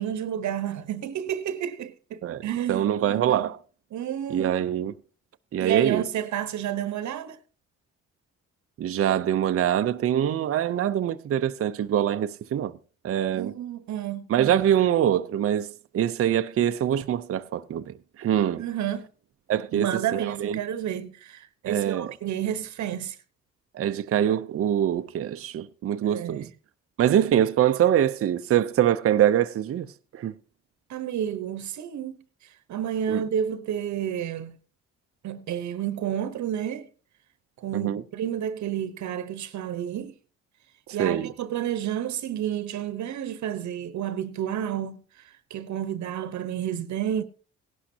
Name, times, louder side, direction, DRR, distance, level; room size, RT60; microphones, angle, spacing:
voice 1, 0.0-3.5 3.9-4.5 5.6-7.4 13.3-14.3 18.6-19.1 19.7-23.2 26.0-26.5 30.9-32.2 32.4-34.6 35.2-36.9 37.6-40.1 40.9-45.0 45.5-47.2, right 10 dB, 70° right, 1.0 m, -30 dB
voice 2, 2.7-3.6 4.3-4.9 5.5-6.1 8.8-12.7 13.0-13.5 14.3-18.6 19.5-20.6 21.6-22.1 23.7-26.5 27.0-30.3 33.1-33.2 37.7-38.0 41.0-41.3, right 10 dB, 50° right, 0.6 m, -24 dB
16.5 x 11.5 x 2.8 m
cardioid pair, 90°, 30 cm